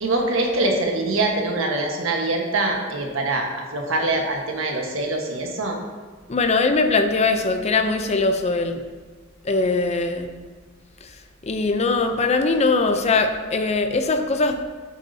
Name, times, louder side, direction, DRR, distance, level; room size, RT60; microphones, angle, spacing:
voice 1, 0.0-5.8, right 2 dB, 90° right, 1 dB, 1.3 m, -24 dB
voice 2, 6.3-8.8 9.4-10.3 11.0-11.1 11.4-14.7, left 3 dB, 35° left, 7 dB, 0.5 m, -21 dB
8.3 x 8.3 x 2.7 m, 1.5 s
head